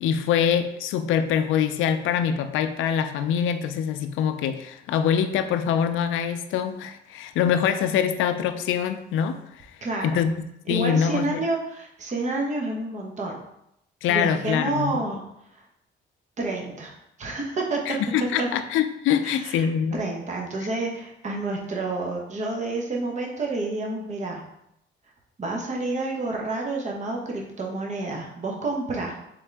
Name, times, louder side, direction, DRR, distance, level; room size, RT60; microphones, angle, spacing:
voice 1, 0.0-9.7 10.0-10.3 10.7-11.4 14.0-15.0 17.9-20.0, left 8 dB, 85° left, 9 dB, 0.4 m, -24 dB
voice 2, 9.8-10.2 10.7-13.4 14.1-15.2 15.5-15.6 16.4-17.8 18.4-18.5 19.2-19.7 19.9-24.4 25.4-29.2, right 2 dB, 35° right, -1 dB, 0.9 m, -29 dB
3.8 x 3.5 x 3.3 m, 0.79 s
cardioid pair, 90°, 20 cm